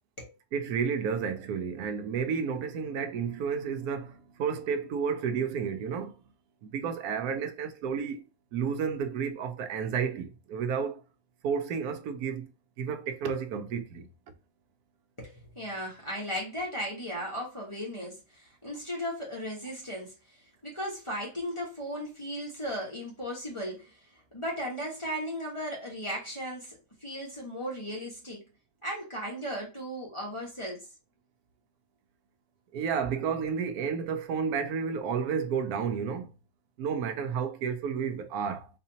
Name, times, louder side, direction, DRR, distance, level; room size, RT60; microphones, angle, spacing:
voice 1, 0.5-6.1 6.6-11.0 11.4-12.5 12.8-14.1 32.7-36.3 36.8-38.7, right 6 dB, 75° right, 1.1 m, -31 dB
voice 2, 15.2-24.0 24.3-26.8 27.0-28.4 28.8-30.9, equal, 20° left, 1.2 m, -36 dB
4.1 x 2.7 x 2.8 m
omnidirectional pair, 1.6 m